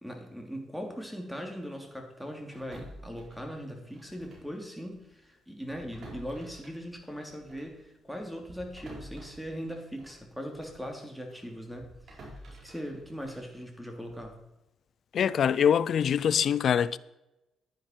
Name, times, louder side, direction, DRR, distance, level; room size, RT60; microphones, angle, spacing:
voice 1, 0.0-12.2 12.6-14.4, equal, ahead, 2.8 m, -40 dB
sound 1, 2.5-4.6 4.8-5.0 5.6-10.9 11.3-14.4, right 1 dB, 60° right, 4.2 m, -50 dB
voice 2, 15.1-17.0, left 8 dB, 60° left, 0.4 m, -24 dB
10.5 x 10.0 x 4.5 m
cardioid pair, 90°, 0 cm